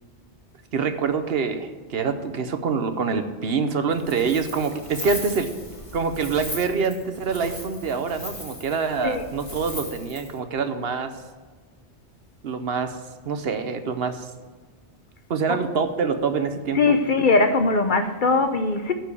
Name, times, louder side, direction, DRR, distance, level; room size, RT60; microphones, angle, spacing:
voice 1, 0.7-5.5 5.9-11.1 12.4-13.0 13.3-14.3 15.3-16.8, right 5 dB, 60° right, 1.0 m, -25 dB
Wind, 3.9-10.4, left 1 dB, 30° left, 1.9 m, -38 dB
voice 2, 16.7-18.9, left 3 dB, 50° left, 0.8 m, -20 dB
12.0 x 4.5 x 8.4 m
omnidirectional pair, 1.2 m